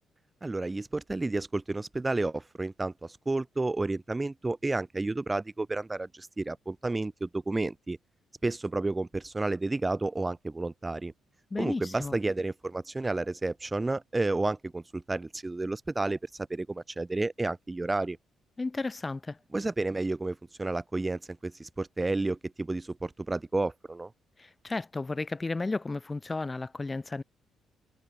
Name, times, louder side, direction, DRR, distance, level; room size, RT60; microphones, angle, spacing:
voice 1, 0.4-8.0 8.4-11.1 11.6-18.2 19.5-24.1, right 2 dB, 20° right, 3.3 m, -31 dB
voice 2, 11.5-12.1 18.6-19.4 24.4-27.2, left 3 dB, 20° left, 5.1 m, -33 dB
cardioid pair, 90°, 0 cm